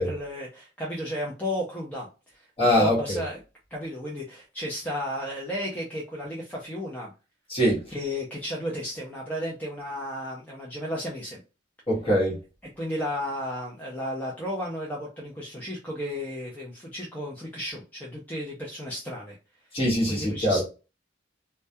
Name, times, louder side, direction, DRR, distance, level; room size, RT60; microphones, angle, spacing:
voice 1, 0.0-2.5 2.8-3.4 3.7-7.1 7.9-11.4 12.8-19.4 20.1-20.6, equal, 10° left, 0.4 m, -33 dB
voice 2, 2.6-3.2 7.5-7.8 11.9-12.4 19.7-20.6, equal, 30° left, 1.0 m, -23 dB
2.2 x 2.2 x 2.6 m
head